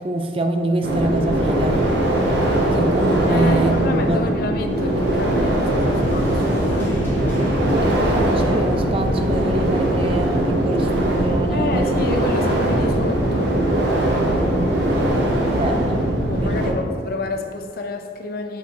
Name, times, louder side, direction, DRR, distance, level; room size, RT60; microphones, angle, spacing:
voice 1, 0.0-1.9 2.7-3.8 4.1-4.2 7.7-12.0 14.3-14.5 15.4-16.0 16.4-16.7, right 1 dB, 30° right, 5 dB, 0.5 m, -25 dB
sound 1, 0.8-16.7, right 1 dB, 70° right, 1.0 m, -20 dB
voice 2, 3.3-7.1 11.5-13.6 16.3-18.6, left 2 dB, 55° left, 4 dB, 0.6 m, -29 dB
sound 2, 5.6-14.0, equal, 10° left, 1.3 m, -37 dB
8.2 x 5.0 x 3.1 m, 2.3 s
head